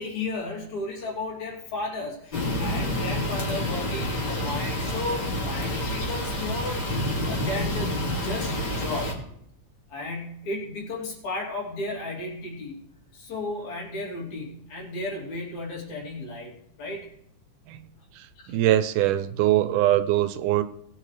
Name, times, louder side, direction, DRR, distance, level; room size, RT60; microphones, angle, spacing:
voice 1, 0.0-9.1 9.9-12.8 13.1-16.5 16.8-17.1 18.4-18.5, left 2 dB, 65° left, -2 dB, 4.4 m, -34 dB
sound 1, 2.3-9.1, left 1 dB, 40° left, 2.8 m, -28 dB
voice 2, 18.1-20.6, right 13 dB, 80° right, 11 dB, 2.2 m, -23 dB
20.0 x 8.8 x 3.3 m, 0.73 s
omnidirectional pair, 3.6 m